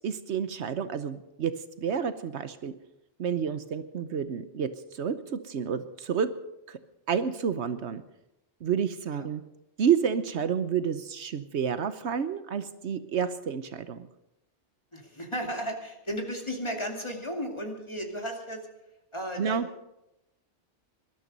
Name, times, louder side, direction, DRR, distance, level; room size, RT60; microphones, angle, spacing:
voice 1, 0.0-1.5 1.8-2.7 3.2-6.3 6.7-6.8 7.1-8.0 8.6-9.4 9.8-14.1 19.4-19.7, right 7 dB, 75° right, 12 dB, 1.1 m, -29 dB
voice 2, 14.9-18.6 19.1-19.6, equal, 25° left, 2 dB, 2.3 m, -34 dB
19.5 x 12.0 x 5.3 m, 0.89 s
omnidirectional pair, 1.2 m